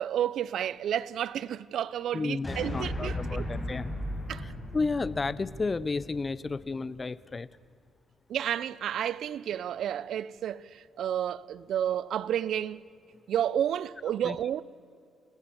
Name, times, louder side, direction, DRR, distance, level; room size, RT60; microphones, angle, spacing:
voice 1, 0.0-3.5 4.3-4.4 8.3-12.8 13.3-14.6, right 10 dB, 70° right, 0.5 m, -31 dB
voice 2, 2.1-3.9 4.4-7.5 14.2-14.4, left 4 dB, 30° left, 0.6 m, -32 dB
sound 1, 2.4-6.9, left 1 dB, 10° left, 7.7 m, -36 dB
29.0 x 18.0 x 7.0 m
cardioid pair, 90°, 0 cm